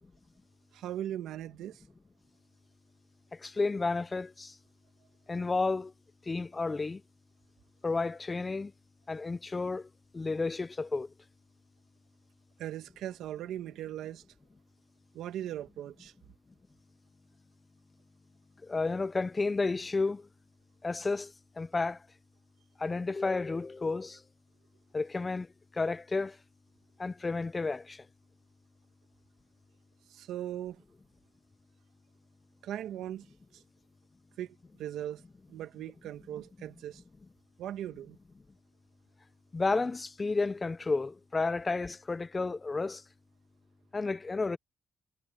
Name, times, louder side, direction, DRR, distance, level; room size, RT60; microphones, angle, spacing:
voice 1, 0.7-1.8 12.6-14.2 15.1-16.1 30.1-30.8 32.6-33.3 33.5-33.6 34.4-35.2 35.5-37.0 37.6-38.2, right 11 dB, 80° right, 1.5 m, -39 dB
voice 2, 3.3-4.6 5.3-5.9 6.3-7.0 7.8-8.7 9.1-9.9 10.1-11.1 18.6-20.3 20.8-22.0 22.8-24.2 24.9-25.5 25.7-26.4 27.0-28.1 39.5-43.0 43.9-44.6, left 3 dB, 25° left, 0.4 m, -31 dB
cardioid pair, 90°, 0 cm